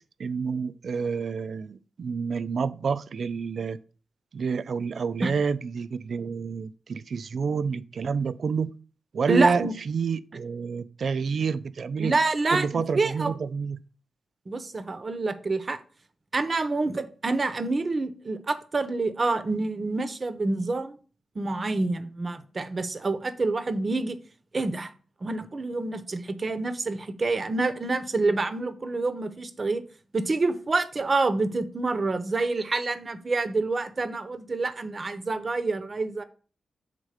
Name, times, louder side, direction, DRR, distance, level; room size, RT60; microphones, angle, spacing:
voice 1, 0.2-3.8 4.3-8.7 9.1-12.2 12.5-13.8, right 5 dB, 65° right, 0.4 m, -29 dB
voice 2, 9.3-9.7 12.0-13.3 14.5-15.8 16.3-21.0 21.3-24.2 24.5-24.9 25.2-29.8 30.1-36.2, right 3 dB, 40° right, 0.8 m, -27 dB
6.6 x 3.7 x 4.9 m
cardioid pair, 80°, 0 cm